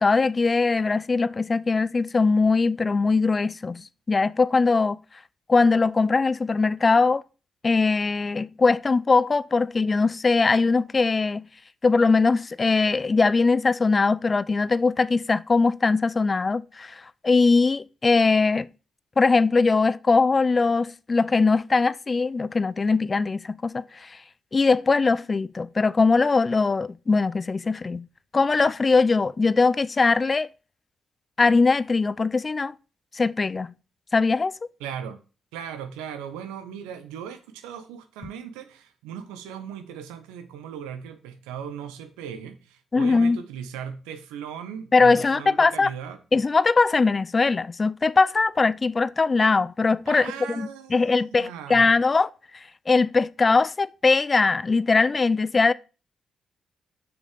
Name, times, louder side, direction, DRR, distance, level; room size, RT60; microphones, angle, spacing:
voice 1, 0.0-5.0 5.5-7.2 7.6-11.5 11.8-18.7 19.2-24.2 24.5-28.1 28.3-30.5 31.4-32.8 33.1-33.7 34.1-34.5 42.9-43.4 44.9-45.9 46.3-52.3 52.9-55.7, left 4 dB, 40° left, 0.5 m, -21 dB
voice 2, 34.8-35.2 35.5-46.2 50.1-51.9, right 8 dB, 85° right, 1.0 m, -38 dB
6.4 x 6.1 x 6.6 m
hypercardioid pair, 45°, 0 cm